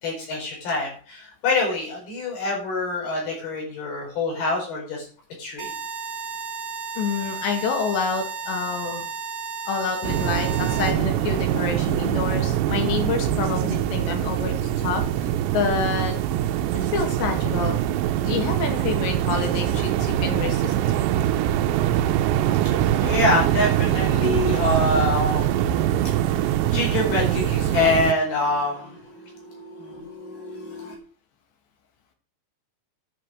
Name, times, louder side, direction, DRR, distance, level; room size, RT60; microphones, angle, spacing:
voice 1, 0.0-5.1 5.4-5.7 23.0-25.8 26.3-31.0, left 2 dB, 60° left, -1 dB, 6.4 m, -26 dB
sound 1, 5.6-10.9, right 5 dB, 55° right, 2.7 m, -33 dB
voice 2, 7.0-9.1 9.7-15.3 15.5-16.2 16.9-17.8 18.3-20.7, left 6 dB, 75° left, 4 dB, 4.2 m, -28 dB
sound 2, 10.0-28.1, right 11 dB, 85° right, 2.9 m, -23 dB
11.0 x 6.7 x 6.1 m, 0.42 s
omnidirectional pair, 5.1 m